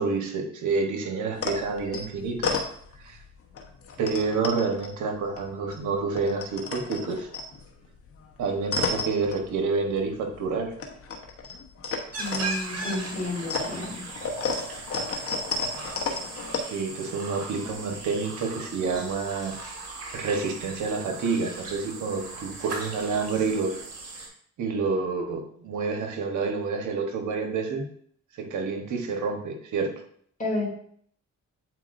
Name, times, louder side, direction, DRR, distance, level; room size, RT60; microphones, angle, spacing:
voice 1, 0.0-2.5 3.0-3.2 4.0-7.3 8.4-10.7 16.7-19.5 20.1-23.8 24.6-27.8 28.4-29.9, right 4 dB, 75° right, 4 dB, 1.2 m, -28 dB
sound 1, 1.4-3.2 3.5-5.8 6.0-10.0 10.3-16.6, left 3 dB, 50° left, 1.1 m, -33 dB
sound 2, 12.1-24.3, right 3 dB, 55° right, 1.9 m, -38 dB
voice 2, 12.2-14.0 30.4-30.7, left 2 dB, 25° left, -4 dB, 2.7 m, -31 dB
8.1 x 4.6 x 2.6 m, 0.63 s
cardioid pair, 90°, 30 cm